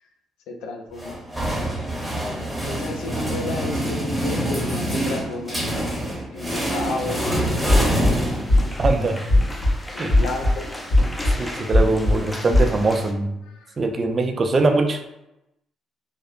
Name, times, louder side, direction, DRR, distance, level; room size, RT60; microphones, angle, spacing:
voice 1, 0.5-1.2 2.7-5.8 6.3-7.9 8.2-8.4 9.9-10.6 11.2-11.5 13.5-13.8, left 2 dB, 85° left, 3 dB, 0.4 m, -32 dB
sound 1, 1.0-8.9, equal, 5° right, 0.9 m, -26 dB
sound 2, 6.5-13.1, left 1 dB, 15° left, 0.5 m, -36 dB
sound 3, 7.7-8.1 8.5-8.9 9.3-9.7 10.1-10.5 10.9-11.3 11.7-12.1 12.5-12.7, left 1 dB, 50° left, 1.2 m, -17 dB
voice 2, 8.8-9.2 10.0-10.1 11.4-13.4 13.8-15.0, right 3 dB, 40° right, 4 dB, 0.4 m, -22 dB
2.9 x 2.0 x 2.4 m, 0.90 s
supercardioid pair, 70°, 0 cm